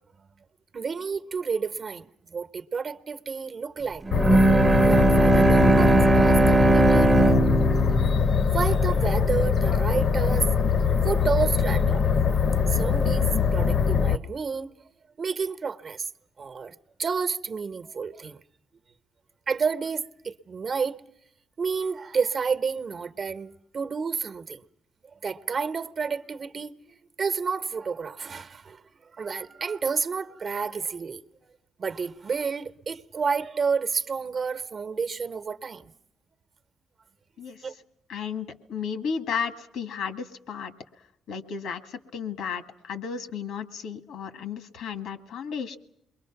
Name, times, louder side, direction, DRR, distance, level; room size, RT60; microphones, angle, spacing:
voice 1, 0.7-4.0 4.8-7.1 8.5-12.1 12.7-14.7 15.2-16.1 16.4-18.4 19.5-21.0 21.6-24.6 25.2-26.8 27.2-31.2 31.8-35.9 37.6-37.7, right 5 dB, 45° right, 1.0 m, -30 dB
sound 1, 4.1-14.2, left 6 dB, 55° left, 0.9 m, -23 dB
Bowed string instrument, 4.1-9.4, right 2 dB, 20° right, 0.8 m, -20 dB
voice 2, 38.1-40.7 41.3-45.8, left 6 dB, 80° left, 1.6 m, -33 dB
28.5 x 22.5 x 5.9 m
cardioid pair, 90°, 0 cm